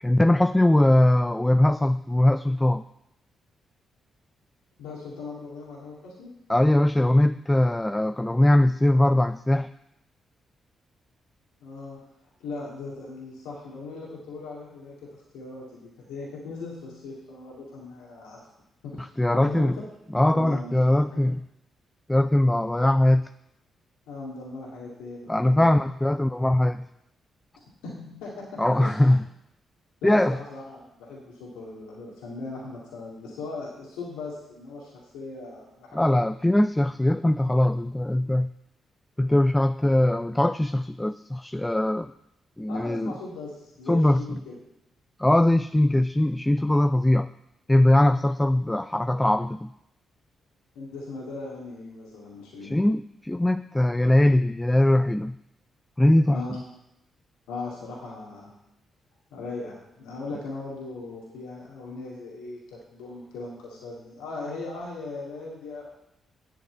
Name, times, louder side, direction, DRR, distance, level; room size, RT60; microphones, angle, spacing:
voice 1, 0.0-2.8 6.5-9.7 19.0-19.8 20.1-21.4 22.1-23.3 25.3-26.9 28.6-29.2 30.0-30.4 35.9-38.5 39.2-42.1 42.6-43.1 43.9-44.2 45.2-47.3 47.7-49.7 52.6-55.4 56.0-56.4, left 1 dB, 15° left, 11 dB, 0.4 m, -21 dB
voice 2, 4.8-6.3 11.6-12.0 12.4-18.5 18.8-19.1 19.3-19.8 20.3-20.7 21.1-21.2 24.1-25.6 27.8-29.2 30.0-36.3 42.7-44.5 50.7-52.8 56.3-56.6 57.5-58.5 59.3-65.9, left 3 dB, 90° left, -4 dB, 2.3 m, -38 dB
8.9 x 6.4 x 8.0 m, 0.83 s
supercardioid pair, 50°, 0 cm